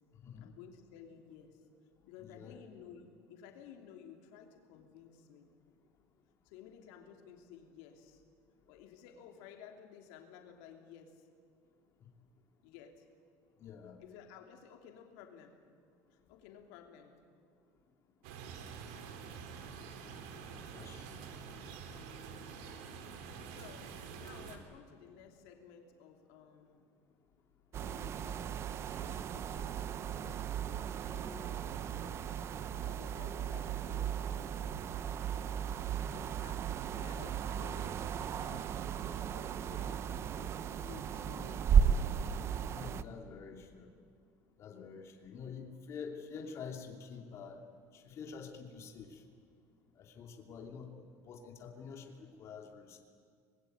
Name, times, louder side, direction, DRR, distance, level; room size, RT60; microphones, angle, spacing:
voice 1, 0.4-1.7 2.0-5.5 6.4-8.2 8.7-11.3 12.6-13.1 14.0-15.6 16.1-17.2 23.5-26.9 27.7-29.9 30.9-32.5 32.8-35.6 36.2-38.9 39.2-42.4, left 8 dB, 80° left, 4 dB, 3.0 m, -55 dB
voice 2, 2.2-2.5 13.6-14.0 20.7-21.2 30.2-30.4 42.7-43.9 44.6-47.6 47.9-49.2 50.0-50.9 51.3-53.0, left 6 dB, 40° left, 2 dB, 2.8 m, -47 dB
sound 1, 18.2-24.6, right 6 dB, 85° right, 3.2 m, -47 dB
sound 2, 27.7-43.0, right 8 dB, 35° right, 0.8 m, -35 dB
25.0 x 21.0 x 9.4 m, 2.3 s
cardioid pair, 140°, 7 cm